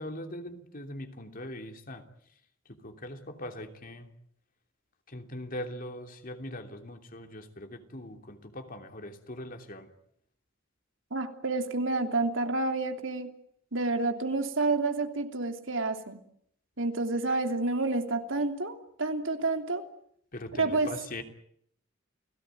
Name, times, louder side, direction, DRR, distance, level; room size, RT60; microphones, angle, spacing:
voice 1, 0.0-2.1 2.7-4.1 5.1-9.9 20.3-21.2, left 1 dB, 45° left, 6 dB, 3.1 m, -41 dB
voice 2, 11.1-13.3 13.7-16.2 16.8-19.8 20.6-20.9, right 3 dB, 85° right, 6 dB, 3.1 m, -29 dB
29.5 x 18.0 x 9.3 m, 0.70 s
head